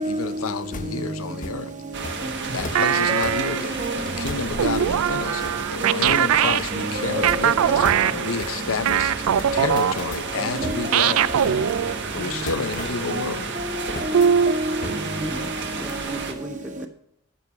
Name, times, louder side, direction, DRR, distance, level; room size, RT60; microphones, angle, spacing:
voice 1, 0.1-1.7 2.5-3.8 4.2-5.4 5.7-9.1 9.5-11.2 12.1-13.4, left 4 dB, 75° left, 0.6 m, -29 dB
sound 1, 0.7-1.6 2.0-2.2 2.6-2.9 3.2-3.4 3.8-4.0 4.3-5.0 5.4-6.3 6.6-6.9 7.2-7.5 7.8-8.1 8.4-8.6 8.9-9.0 9.4-10.3 10.6-11.8 12.3-13.6 14.0-14.3 14.8-15.0 15.3-15.4 15.6-15.8, left 2 dB, 40° left, 0.8 m, -37 dB
voice 2, 0.8-1.1 3.1-3.5 3.7-4.0 5.8-6.0 6.7-7.9 9.5-9.8 10.4-11.8 13.1-15.4, right 1 dB, 35° right, 1.4 m, -29 dB
sound 2, 1.9-16.3, right 4 dB, 55° right, 1.5 m, -32 dB
sound 3, 2.7-3.8 4.6-10.5 10.9-12.3 14.1-15.1, right 8 dB, 80° right, 0.4 m, -22 dB
voice 3, 15.1-16.9, right 1 dB, 5° right, 0.6 m, -37 dB
12.0 x 6.1 x 5.8 m
head